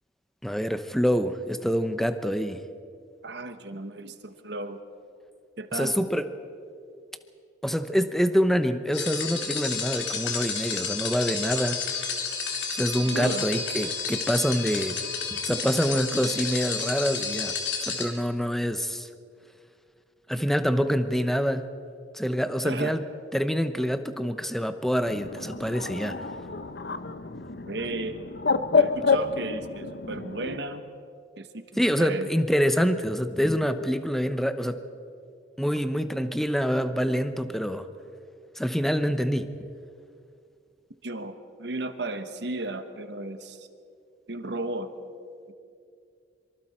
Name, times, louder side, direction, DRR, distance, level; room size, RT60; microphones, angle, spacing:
voice 1, 0.4-2.6 5.7-6.2 7.6-12.0 12.7-15.0 15.3-17.5 17.9-19.1 20.3-21.7 22.1-23.0 23.3-26.3 31.8-34.8 35.6-37.9 38.6-39.5, equal, ahead, 9 dB, 0.8 m, -26 dB
voice 2, 3.2-4.8 5.6-6.0 13.1-13.5 22.6-23.0 27.7-28.2 28.7-30.8 31.4-31.6 32.0-32.3 41.0-43.7 44.3-44.9 45.5-45.6, right 2 dB, 65° right, 8 dB, 1.3 m, -34 dB
sound 1, 8.9-18.0, left 5 dB, 80° left, 3.1 m, -31 dB
Bird, 25.1-30.6, left 4 dB, 60° left, 0.8 m, -28 dB
25.5 x 24.0 x 4.4 m, 2.4 s
head